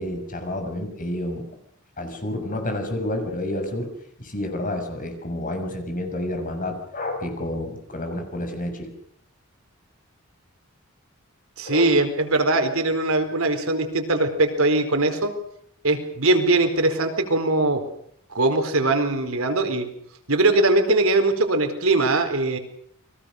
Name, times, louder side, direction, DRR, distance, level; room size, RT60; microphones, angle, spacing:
voice 1, 0.0-1.4 2.0-3.9 4.2-8.9 11.6-11.9, left 1 dB, 40° left, 5 dB, 6.9 m, -29 dB
voice 2, 11.6-15.3 15.8-17.8 18.3-19.9 20.3-22.6, right 2 dB, 85° right, 6 dB, 4.5 m, -21 dB
30.0 x 22.5 x 6.6 m, 0.68 s
head